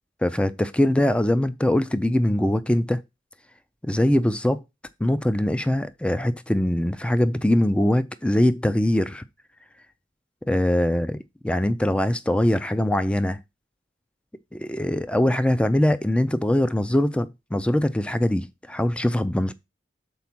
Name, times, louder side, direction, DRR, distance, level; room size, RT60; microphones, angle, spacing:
voice 1, 0.2-3.0 3.8-4.6 5.0-9.2 10.5-11.2 11.4-13.4 14.5-19.5, left 1 dB, 5° left, 0.4 m, -22 dB
7.0 x 4.3 x 5.9 m
head